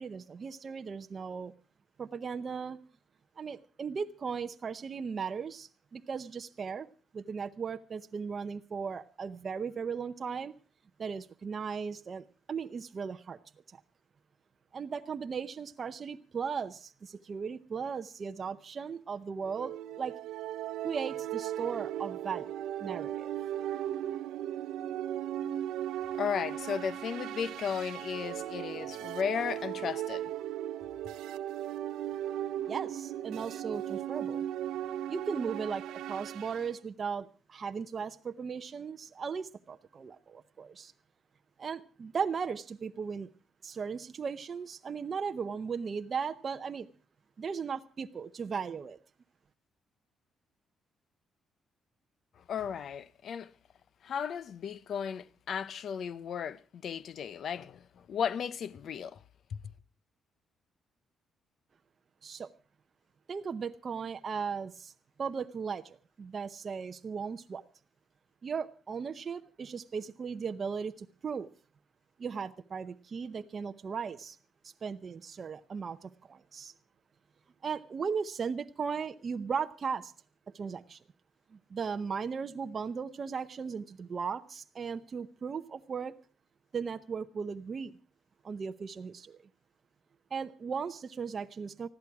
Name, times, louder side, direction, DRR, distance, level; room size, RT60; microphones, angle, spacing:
voice 1, 0.0-1.5 2.0-2.8 3.4-6.9 7.1-10.5 11.0-13.4 14.7-20.2 20.8-22.5 22.8-23.3 32.7-34.4 35.1-40.9 41.6-43.3 43.6-46.9 47.4-49.0 62.2-62.5 63.3-64.9 65.2-67.6 68.4-71.5 72.2-74.4 74.6-76.7 77.6-80.1 80.5-81.0 81.5-86.1 86.7-87.9 88.4-89.4 90.3-91.9, right 6 dB, 40° right, 0.7 m, -37 dB
sound 1, 19.4-36.7, right 11 dB, 90° right, 0.8 m, -37 dB
voice 2, 26.2-30.3 52.4-53.5 54.0-59.2 59.5-59.6, left 7 dB, 55° left, 0.7 m, -35 dB
20.0 x 14.5 x 4.7 m
cardioid pair, 130°, 0 cm